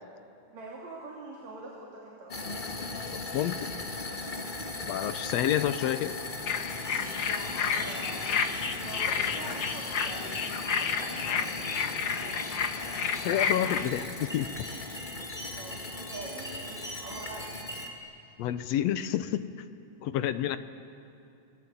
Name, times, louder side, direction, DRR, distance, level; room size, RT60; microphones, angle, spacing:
voice 1, 0.5-2.6 7.2-8.3 8.8-12.5 15.5-17.7, right 2 dB, 65° right, -4 dB, 4.1 m, -45 dB
sound 1, 2.3-17.9, left 3 dB, 40° left, 0.6 m, -39 dB
voice 2, 3.1-3.7 4.9-6.2 13.2-14.5 18.4-19.5 20.0-20.6, left 11 dB, 75° left, 11 dB, 1.7 m, -29 dB
sound 2, 6.5-13.9, left 6 dB, 55° left, 1.3 m, -31 dB
sound 3, 6.5-18.0, right 1 dB, ahead, 7.8 m, -44 dB
29.5 x 19.0 x 8.5 m, 2.7 s
omnidirectional pair, 3.5 m